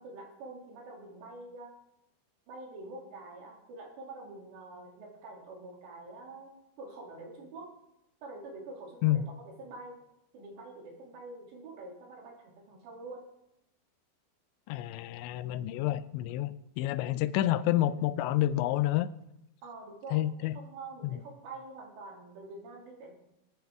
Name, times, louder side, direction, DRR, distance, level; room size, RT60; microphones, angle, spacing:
voice 1, 0.0-1.7 2.5-7.7 8.2-10.0 10.3-13.2 19.6-23.1, right 2 dB, 75° right, -1 dB, 4.8 m, -46 dB
voice 2, 14.7-19.1 20.1-20.5 21.0-21.2, left 14 dB, 85° left, 14 dB, 2.9 m, -29 dB
22.5 x 9.2 x 3.5 m, 0.86 s
omnidirectional pair, 5.2 m